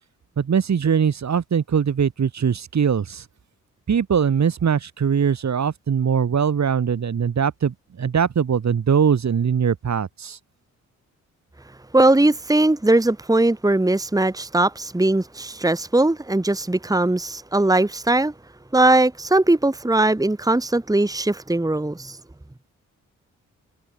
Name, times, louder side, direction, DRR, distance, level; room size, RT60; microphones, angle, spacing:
voice 1, 0.4-3.2 3.9-10.4, right 7 dB, 55° right, 2.9 m, -21 dB
voice 2, 11.9-18.3 18.7-22.2, right 2 dB, 10° right, 1.9 m, -19 dB
supercardioid pair, 50°, 33 cm